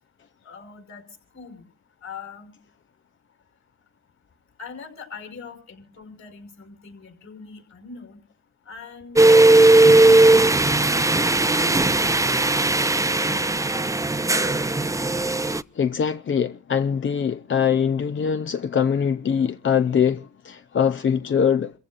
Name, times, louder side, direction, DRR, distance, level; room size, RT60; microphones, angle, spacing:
voice 1, 0.4-1.1 1.3-1.6 2.0-2.6 4.6-8.2 8.7-11.5 12.0-12.5 12.8-12.9 13.1-14.5, left 5 dB, 60° left, 5.7 m, -42 dB
sound 1, 9.2-15.6, right 2 dB, 10° right, 0.6 m, -17 dB
voice 2, 15.8-21.7, left 7 dB, 40° left, 0.7 m, -22 dB
28.5 x 15.0 x 2.5 m
supercardioid pair, 55°, 31 cm